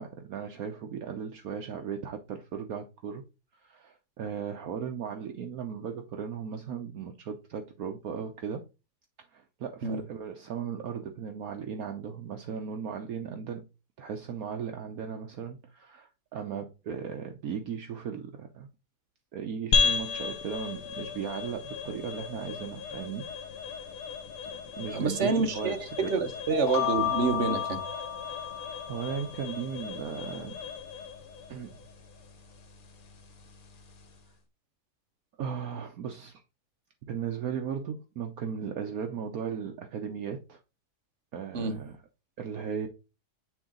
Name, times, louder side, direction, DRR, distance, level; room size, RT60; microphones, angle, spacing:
voice 1, 0.0-3.2 3.6-8.6 9.3-13.7 14.0-18.7 19.3-23.6 24.7-26.1 28.9-30.6 31.5-31.8 35.4-36.4 37.0-40.6 41.3-42.0 42.4-42.9, right 7 dB, 65° right, 1.2 m, -37 dB
sound 1, 19.7-34.3, left 5 dB, 65° left, 1.7 m, -35 dB
voice 2, 24.9-27.8 41.5-41.8, right 4 dB, 50° right, 1.4 m, -28 dB
sound 2, 26.5-29.3, left 9 dB, 85° left, 1.3 m, -32 dB
9.0 x 3.8 x 3.7 m
omnidirectional pair, 1.7 m